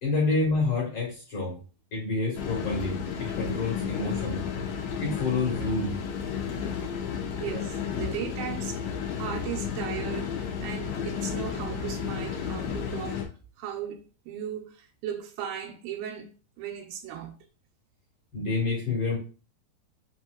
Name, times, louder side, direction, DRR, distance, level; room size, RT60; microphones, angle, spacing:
voice 1, 0.0-1.7 1.9-4.4 5.0-6.0 18.3-19.2, left 3 dB, 55° left, 1.8 m, -28 dB
sound 1, 2.3-13.3, left 7 dB, 85° left, 1.6 m, -32 dB
voice 2, 7.4-8.9 9.1-17.5, right 9 dB, 85° right, 2.3 m, -37 dB
5.3 x 2.9 x 2.3 m
omnidirectional pair, 4.2 m